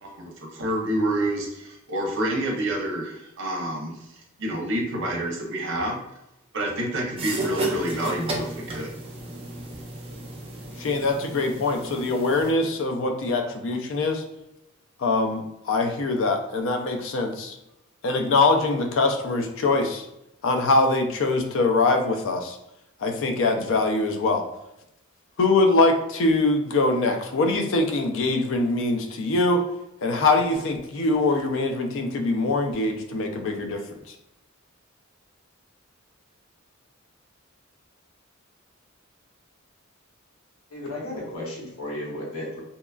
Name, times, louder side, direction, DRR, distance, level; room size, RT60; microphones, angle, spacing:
voice 1, 0.0-4.0 4.4-6.0 6.5-8.9, right 1 dB, 65° right, 0 dB, 0.7 m, -28 dB
sound 1, 7.2-12.5, right 2 dB, 25° right, 0.4 m, -34 dB
voice 2, 10.8-14.2 15.0-17.6 18.0-20.0 20.4-22.6 23.0-24.4 25.4-29.6 30.0-33.8, left 3 dB, 65° left, 5 dB, 0.4 m, -23 dB
voice 3, 40.7-42.6, left 1 dB, 90° left, -3 dB, 0.9 m, -34 dB
2.8 x 2.3 x 2.3 m, 0.87 s
head